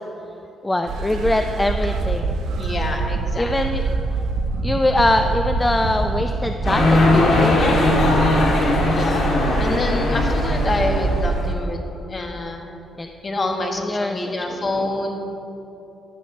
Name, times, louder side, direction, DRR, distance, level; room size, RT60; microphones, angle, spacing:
voice 1, 0.6-2.4 3.4-3.8 4.6-8.0 13.0-13.1 13.8-14.7, left 1 dB, 15° left, 6 dB, 0.5 m, -23 dB
sound 1, 0.9-11.5, right 3 dB, 75° right, 0.8 m, -24 dB
voice 2, 2.6-3.5 8.6-12.7 13.2-15.2, left 2 dB, 35° left, 3 dB, 1.5 m, -27 dB
sound 2, 6.6-11.3, left 2 dB, 60° left, 2.3 m, -19 dB
15.5 x 11.0 x 3.2 m, 2.9 s
cardioid pair, 90°, 0 cm